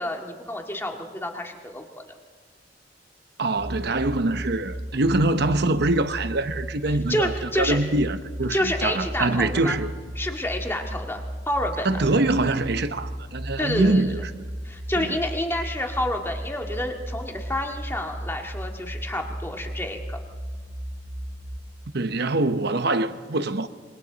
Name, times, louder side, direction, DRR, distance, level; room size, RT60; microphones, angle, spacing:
voice 1, 0.0-2.0 6.9-7.8 8.5-9.8 10.2-12.0 13.6-14.2 14.6-20.2, left 1 dB, 15° left, 1.9 m, -29 dB
voice 2, 3.4-9.9 11.8-14.3 15.0-15.2 21.9-23.7, right 2 dB, 60° right, 1.0 m, -24 dB
sound 1, 3.6-21.6, equal, 40° right, 2.5 m, -35 dB
27.0 x 24.0 x 4.1 m
head